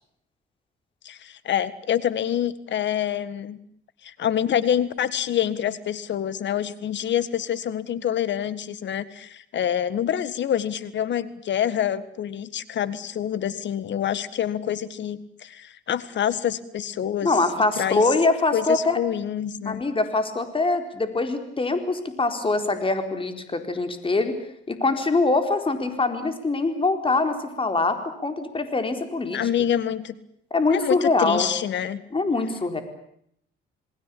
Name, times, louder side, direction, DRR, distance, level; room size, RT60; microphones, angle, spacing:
voice 1, 1.0-3.6 4.0-17.3 17.8-18.0 18.5-19.8 29.3-30.2 30.7-32.0, left 10 dB, 65° left, 15 dB, 1.7 m, -26 dB
voice 2, 17.2-19.0 19.6-24.4 24.7-29.4 30.5-31.5 32.1-32.8, left 3 dB, 25° left, 7 dB, 4.3 m, -23 dB
28.5 x 19.5 x 8.6 m, 0.70 s
cardioid pair, 90°, 20 cm